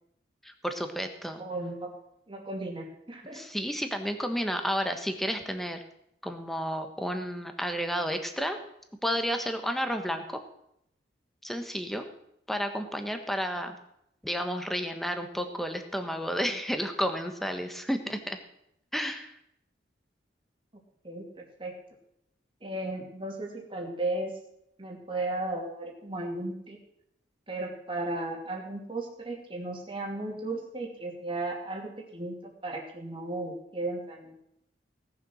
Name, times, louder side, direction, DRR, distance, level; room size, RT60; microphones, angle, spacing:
voice 1, 0.4-1.4 3.3-5.8 6.2-8.6 9.0-10.4 11.4-12.1 12.5-13.7 14.2-18.4 18.9-19.3, equal, ahead, 6 dB, 1.3 m, -31 dB
voice 2, 1.4-1.9 2.3-3.4 21.0-21.8 22.6-24.3 24.8-26.8 27.5-34.4, right 2 dB, 30° right, 0 dB, 2.7 m, -35 dB
18.0 x 6.9 x 6.3 m, 0.78 s
head